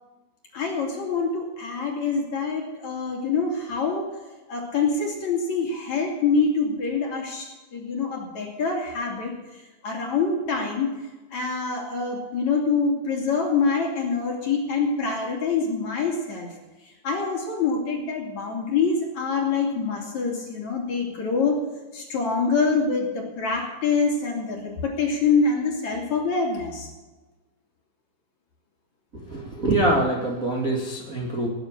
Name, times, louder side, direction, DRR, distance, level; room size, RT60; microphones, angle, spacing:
voice 1, 0.5-4.1 4.5-10.9 11.3-16.5 16.8-21.6 21.9-26.9, left 4 dB, 45° left, 0 dB, 3.4 m, -25 dB
voice 2, 29.1-31.5, right 1 dB, 30° right, -2 dB, 1.5 m, -24 dB
20.0 x 9.1 x 6.6 m, 1.2 s
omnidirectional pair, 5.2 m